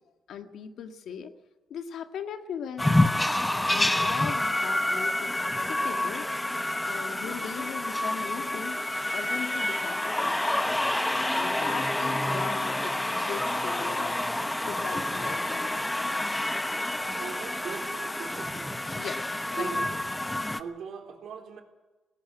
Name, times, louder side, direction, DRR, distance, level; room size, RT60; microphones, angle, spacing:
voice 1, 0.3-1.3 1.7-2.9 3.7-6.3 6.8-10.7 11.4-14.2 14.6-15.9 18.9-19.2 19.5-19.7, left 7 dB, 70° left, 6 dB, 1.8 m, -39 dB
sound 1, 2.8-20.6, left 1 dB, 10° left, 1.1 m, -28 dB
voice 2, 16.7-18.7 19.6-19.9 20.6-21.6, right 6 dB, 70° right, 2 dB, 4.0 m, -40 dB
18.0 x 17.5 x 9.0 m, 1.1 s
cardioid pair, 90°, 0 cm